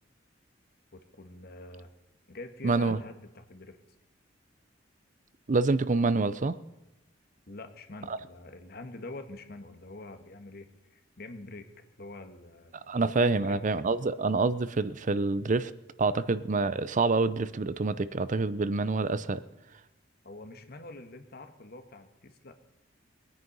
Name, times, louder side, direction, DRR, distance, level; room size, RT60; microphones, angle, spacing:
voice 1, 0.9-1.9 2.3-3.8 7.5-11.7 12.0-13.6 20.2-22.5, left 2 dB, 55° left, 6 dB, 1.5 m, -45 dB
voice 2, 2.6-3.0 5.5-6.6 8.1-8.2 12.9-15.7 16.0-19.4, right 3 dB, 40° right, 15 dB, 0.6 m, -27 dB
21.5 x 9.5 x 5.5 m, 0.94 s
head